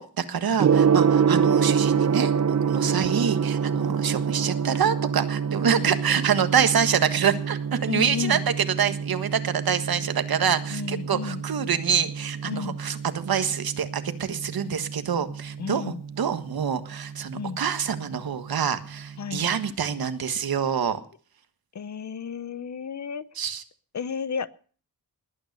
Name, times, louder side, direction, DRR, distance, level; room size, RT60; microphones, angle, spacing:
voice 1, 0.0-8.4 8.8-21.0 23.4-23.6, right 7 dB, 70° right, 10 dB, 1.5 m, -26 dB
Gong, 0.6-19.6, right 7 dB, 45° right, 1.0 m, -27 dB
voice 2, 3.7-4.0 5.7-5.9 7.9-8.4 10.7-11.4 12.4-12.8 15.6-16.0 17.3-17.6 19.2-19.5 21.7-23.3 23.9-24.5, left 6 dB, 50° left, 16 dB, 0.8 m, -33 dB
20.0 x 9.3 x 6.6 m, 0.43 s
wide cardioid pair, 150°, 38 cm